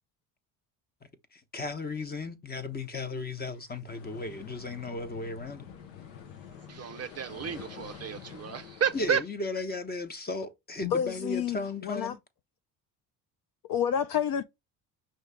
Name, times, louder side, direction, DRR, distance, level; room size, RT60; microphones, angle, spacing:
voice 1, 1.3-5.6 8.9-12.1, left 2 dB, 20° left, 1.0 m, -35 dB
sound 1, 3.9-9.2, left 8 dB, 85° left, 1.0 m, -47 dB
voice 2, 6.7-9.2, right 7 dB, 30° right, 0.5 m, -31 dB
voice 3, 10.8-12.2 13.7-14.4, left 8 dB, 45° left, 0.5 m, -29 dB
5.6 x 2.8 x 3.4 m
hypercardioid pair, 65°, 49 cm